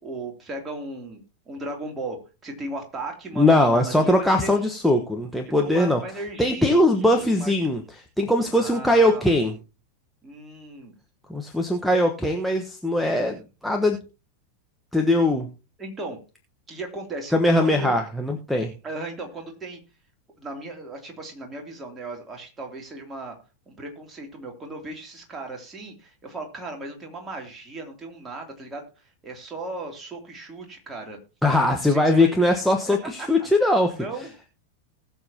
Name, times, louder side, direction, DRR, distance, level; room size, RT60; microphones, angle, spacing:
voice 1, 0.0-4.7 5.6-7.5 8.5-9.3 10.2-10.9 15.8-16.2 16.7-18.0 18.8-19.8 20.4-23.3 23.7-28.8 29.2-31.2 31.8-32.3 32.9-33.5 33.9-34.5, right 2 dB, 20° right, 1 dB, 2.9 m, -36 dB
voice 2, 3.4-6.0 6.4-9.5 11.3-14.0 14.9-15.5 17.3-18.7 31.4-34.0, left 1 dB, ahead, 2 dB, 1.1 m, -21 dB
19.5 x 6.9 x 2.8 m, 0.31 s
figure-of-eight pair, 90°, 0 cm